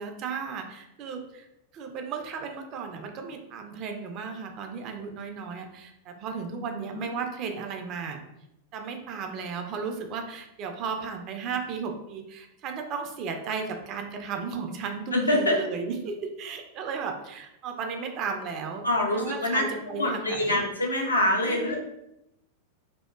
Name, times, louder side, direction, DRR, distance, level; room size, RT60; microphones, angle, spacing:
voice 1, 0.0-1.5 1.7-8.2 8.7-18.8 19.1-20.6 21.4-21.8, right 5 dB, 40° right, 4 dB, 0.3 m, -35 dB
voice 2, 6.6-7.1 15.1-15.6 18.8-19.6 19.9-21.8, left 1 dB, 80° left, 0 dB, 0.5 m, -25 dB
2.7 x 2.0 x 2.2 m, 0.85 s
figure-of-eight pair, 90°, 0 cm